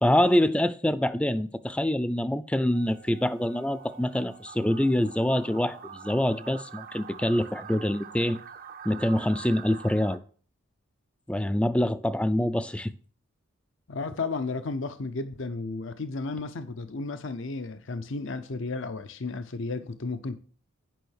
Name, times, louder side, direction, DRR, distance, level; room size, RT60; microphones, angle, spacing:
voice 1, 0.0-8.4 8.8-10.2 11.3-12.9, left 1 dB, 5° left, 0.4 m, -25 dB
sound 1, 2.7-10.2, right 7 dB, 40° right, 0.6 m, -45 dB
voice 2, 13.9-20.4, left 3 dB, 60° left, 0.6 m, -33 dB
9.2 x 5.5 x 6.4 m
head